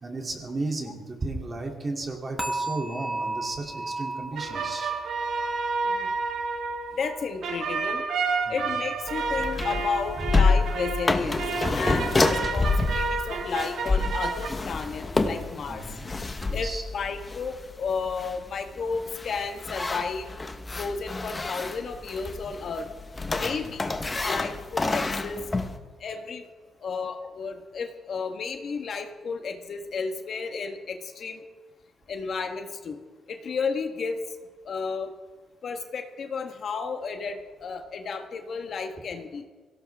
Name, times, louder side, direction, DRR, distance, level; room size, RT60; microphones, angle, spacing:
voice 1, 0.0-4.9 8.5-8.7 11.9-12.3 15.7-16.0 16.4-16.8 23.4-23.7, right 2 dB, 25° right, 1 dB, 2.8 m, -34 dB
sound 1, 2.4-9.5 9.8-10.2 10.6-10.8, right 2 dB, 5° left, 1.4 m, -37 dB
sound 2, 4.4-14.5, right 4 dB, 65° right, 2.0 m, -30 dB
voice 2, 5.8-6.2 7.0-8.0 8.5-11.4 11.7-15.8 16.5-20.3 20.8-22.9 23.3-23.8 24.2-25.4 26.0-26.5 26.8-31.4 32.1-33.0 33.3-34.1 34.6-35.1 35.6-39.4, left 5 dB, 50° left, 6 dB, 1.3 m, -32 dB
sound 3, 9.1-25.8, left 3 dB, 20° left, 1.1 m, -28 dB
23.5 x 17.0 x 3.5 m, 1.4 s
cardioid pair, 140°, 0 cm